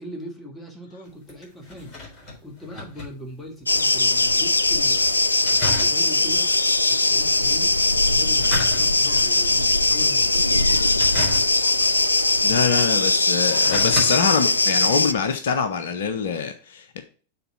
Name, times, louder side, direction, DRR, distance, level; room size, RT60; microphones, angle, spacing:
voice 1, 0.0-1.9 2.4-5.2 5.6-6.5 6.9-10.9, equal, 10° left, 1 dB, 1.9 m, -40 dB
sound 1, 1.0-3.9 4.2-4.3 5.4-6.4 8.2-9.3 9.8-10.2 10.9-11.9 12.7-12.8 13.3-14.1 14.5-14.6, left 2 dB, 30° left, 3.9 m, -32 dB
sound 2, 3.7-15.1, left 2 dB, 80° left, 0.3 m, -20 dB
voice 2, 12.4-17.0, left 6 dB, 60° left, 9 dB, 0.7 m, -24 dB
6.9 x 4.0 x 5.6 m, 0.40 s
figure-of-eight pair, 90°, 0 cm